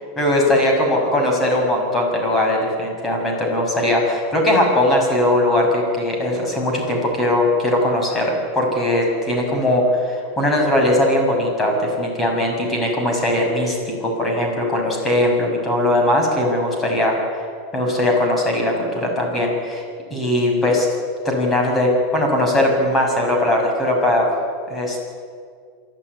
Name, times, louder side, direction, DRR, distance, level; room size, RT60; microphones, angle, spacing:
voice 1, 0.2-17.5 17.7-19.8 20.1-20.9 21.2-24.3 24.7-25.0, left 1 dB, 15° left, 1 dB, 6.3 m, -19 dB
26.5 x 12.0 x 9.7 m, 2.1 s
supercardioid pair, 145°, 0 cm